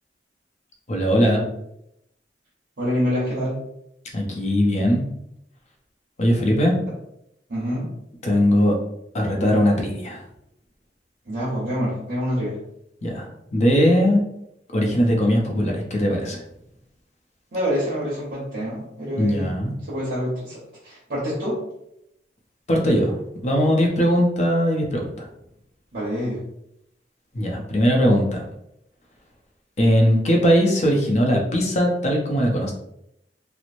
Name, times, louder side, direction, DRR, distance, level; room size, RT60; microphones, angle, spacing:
voice 1, 0.9-1.4 4.1-5.0 6.2-6.8 8.2-8.8 9.1-10.2 13.0-14.2 14.7-16.4 19.2-19.7 22.7-25.3 27.3-28.4 29.8-32.7, equal, 40° left, 0 dB, 0.6 m, -20 dB
voice 2, 2.8-3.5 7.5-7.9 11.3-12.6 17.5-19.5 19.9-21.6 25.9-26.4, equal, 60° right, -9 dB, 0.9 m, -26 dB
3.0 x 2.0 x 2.5 m, 0.79 s
head